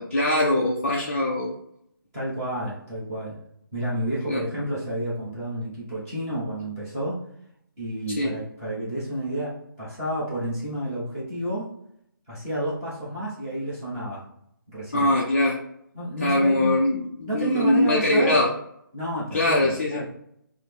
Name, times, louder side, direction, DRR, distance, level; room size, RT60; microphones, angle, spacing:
voice 1, 0.0-1.5 4.3-4.4 8.2-8.3 14.9-15.6 16.2-18.5 19.3-20.0, left 1 dB, 35° left, -2 dB, 0.4 m, -22 dB
voice 2, 2.1-3.4 3.7-7.2 7.8-11.7 12.3-14.3 14.7-15.1 15.9-16.8 17.3-18.5 18.9-20.0, right 1 dB, 10° right, -10 dB, 0.9 m, -30 dB
5.3 x 2.0 x 3.3 m, 0.73 s
hypercardioid pair, 175°, 12 cm